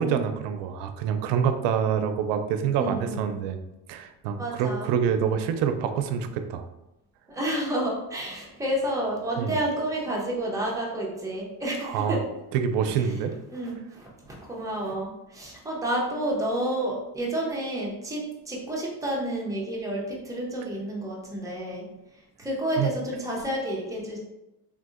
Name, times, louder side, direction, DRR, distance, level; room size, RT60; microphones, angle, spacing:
voice 1, 0.0-3.6 3.9-6.6 9.4-9.6 11.8-12.2 12.5-13.3 22.8-22.9, right 7 dB, 85° right, 8 dB, 0.5 m, -26 dB
voice 2, 2.8-3.2 4.4-4.9 7.3-12.2 12.9-13.1 13.5-21.9 22.4-24.2, right 1 dB, 10° right, -4 dB, 0.5 m, -30 dB
3.7 x 2.6 x 2.4 m, 0.94 s
cardioid pair, 160°, 41 cm